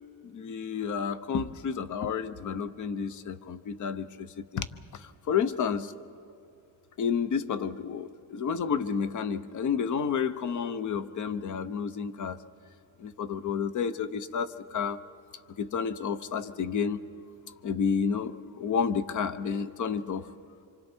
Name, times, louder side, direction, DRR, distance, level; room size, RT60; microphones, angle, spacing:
voice 1, 0.2-4.3 4.5-4.7 5.3-5.9 7.0-12.4 13.0-15.0 15.6-17.0 17.6-20.3, left 6 dB, 55° left, 13 dB, 0.9 m, -30 dB
27.0 x 26.0 x 4.5 m, 2.6 s
cardioid pair, 135°, 37 cm